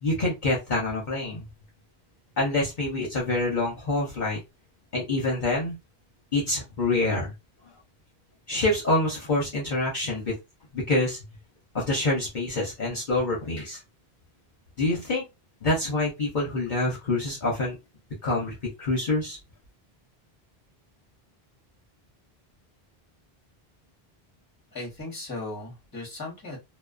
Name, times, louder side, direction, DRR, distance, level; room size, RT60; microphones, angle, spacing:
voice 1, 0.0-1.5 2.4-4.4 4.9-5.7 6.3-7.3 8.5-10.3 10.7-11.2 11.7-13.8 14.8-15.2 15.6-17.8 18.2-19.4, left 2 dB, 50° left, -4 dB, 0.9 m, -26 dB
voice 2, 24.7-26.6, left 2 dB, 20° left, -1 dB, 1.0 m, -37 dB
2.4 x 2.3 x 2.4 m, 0.23 s
omnidirectional pair, 1.0 m